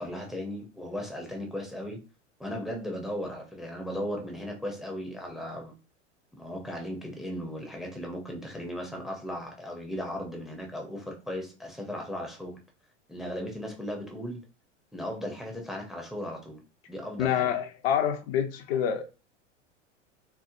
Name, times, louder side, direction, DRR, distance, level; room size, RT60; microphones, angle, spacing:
voice 1, 0.0-2.0 2.4-5.7 6.3-12.6 13.1-14.4 14.9-16.6 16.9-17.5, equal, ahead, 0.5 m, -36 dB
voice 2, 17.2-19.0, left 9 dB, 55° left, 0.6 m, -27 dB
3.0 x 2.0 x 2.4 m
figure-of-eight pair, 90°, 36 cm